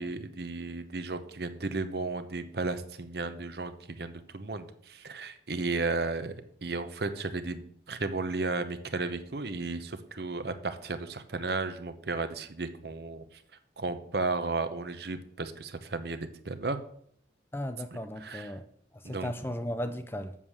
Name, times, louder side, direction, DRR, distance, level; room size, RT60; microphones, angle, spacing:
voice 1, 0.0-6.3 6.6-13.2 13.8-16.8 18.2-18.5 19.0-19.3, right 3 dB, 60° right, 0.8 m, -34 dB
voice 2, 17.5-18.7 18.9-20.3, left 1 dB, 10° left, 0.5 m, -36 dB
7.3 x 6.4 x 7.2 m
head